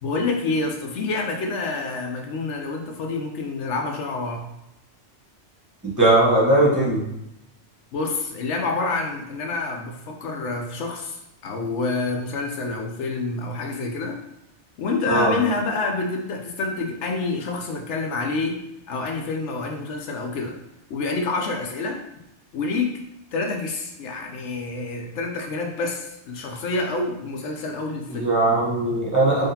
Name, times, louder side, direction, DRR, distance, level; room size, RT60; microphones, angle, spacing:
voice 1, 0.0-4.4 7.9-14.2 14.8-18.6 18.9-20.6 20.9-22.0 22.5-23.0 23.3-28.3, left 3 dB, 75° left, 2 dB, 0.9 m, -27 dB
voice 2, 6.0-7.0 15.1-15.3 28.2-29.5, right 2 dB, 15° right, -7 dB, 1.0 m, -19 dB
3.7 x 3.3 x 2.7 m, 0.85 s
omnidirectional pair, 1.2 m